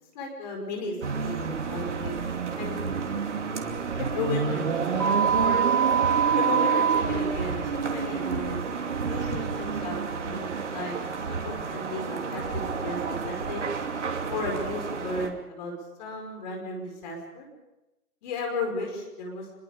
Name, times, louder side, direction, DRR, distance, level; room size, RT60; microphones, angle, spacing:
voice 1, 0.1-0.9 1.2-2.2 2.6-3.0 4.0-5.7 6.3-8.6 9.1-11.0 11.3-13.7 14.3-15.7 16.0-17.5 18.2-19.5, left 2 dB, 30° left, 1 dB, 5.1 m, -34 dB
sound 1, 1.0-15.3, right 5 dB, 50° right, 2.8 m, -30 dB
sound 2, 5.0-7.0, right 7 dB, 80° right, 1.8 m, -23 dB
26.5 x 22.5 x 5.1 m, 1.0 s
figure-of-eight pair, 150°, 46 cm